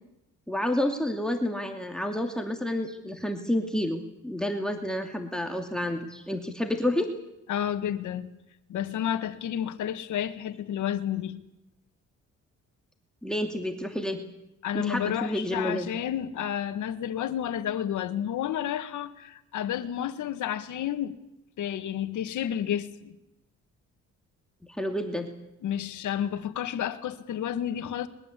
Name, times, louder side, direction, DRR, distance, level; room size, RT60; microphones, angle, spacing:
voice 1, 0.5-7.1 13.2-14.2 14.7-15.9 24.7-25.3, left 1 dB, ahead, 2.8 m, -29 dB
voice 2, 7.5-8.3 8.7-11.4 14.6-21.1 21.6-23.1 25.6-28.1, left 10 dB, 75° left, 1.9 m, -31 dB
22.0 x 21.0 x 8.5 m
cardioid pair, 90°, 30 cm